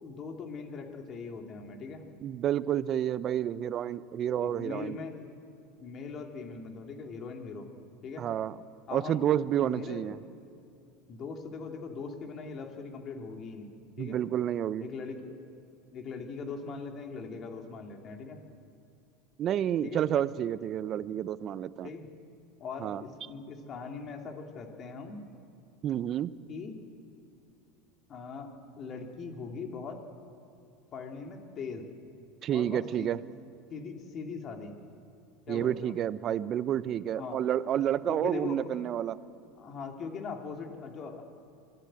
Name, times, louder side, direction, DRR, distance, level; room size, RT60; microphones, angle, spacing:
voice 1, 0.0-2.1 4.2-5.2 5.8-7.7 8.0-8.3 8.9-9.2 9.6-10.0 11.1-14.2 14.8-15.4 15.9-18.4 19.8-20.0 21.8-22.1 22.6-25.2 26.5-26.8 28.1-28.5 28.8-30.0 30.9-31.9 32.5-33.1 33.7-34.7 35.5-35.9 37.1-37.4 38.1-38.7 39.6-41.2, left 5 dB, 40° left, 3 dB, 3.1 m, -40 dB
voice 2, 2.2-5.0 8.2-8.5 8.9-10.2 14.0-14.8 19.4-21.9 22.8-23.0 25.8-26.3 32.4-33.2 35.5-39.2, right 10 dB, 45° right, 16 dB, 0.8 m, -30 dB
25.5 x 15.5 x 7.8 m, 2.5 s
hypercardioid pair, 85°, 0 cm